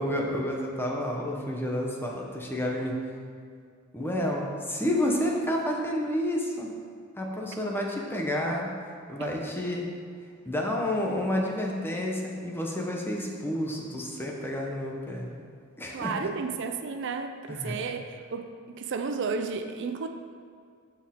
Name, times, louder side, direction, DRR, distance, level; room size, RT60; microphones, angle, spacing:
voice 1, 0.0-3.0 3.9-6.7 7.2-8.7 9.1-9.9 10.4-15.4 15.8-16.3 17.5-17.7, left 1 dB, 10° left, -1 dB, 1.0 m, -30 dB
voice 2, 15.9-20.1, right 5 dB, 60° right, 7 dB, 0.4 m, -33 dB
13.5 x 4.6 x 3.7 m, 2.2 s
head